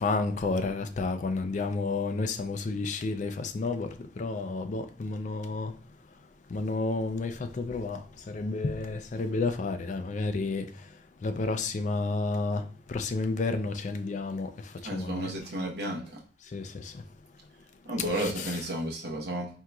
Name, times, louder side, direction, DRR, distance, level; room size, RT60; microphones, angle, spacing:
voice 1, 0.0-3.9 4.2-5.7 6.5-8.0 8.3-10.7 11.2-12.6 12.9-14.5 14.9-15.3 16.5-16.6 18.1-18.6, left 3 dB, 40° left, 0.3 m, -30 dB
voice 2, 14.8-16.2 17.8-19.5, right 1 dB, 60° right, 0.9 m, -32 dB
4.4 x 3.7 x 2.3 m
head